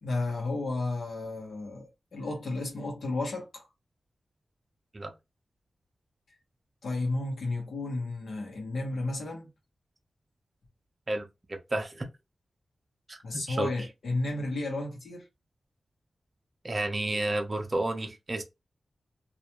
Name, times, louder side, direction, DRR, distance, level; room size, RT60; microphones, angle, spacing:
voice 1, 0.0-3.6 6.8-9.5 13.2-15.3, left 2 dB, 90° left, 0.8 m, -33 dB
voice 2, 11.1-12.1 13.1-13.7 16.6-18.4, right 2 dB, 35° right, 0.5 m, -31 dB
2.3 x 2.1 x 2.9 m
wide cardioid pair, 90°, 0 cm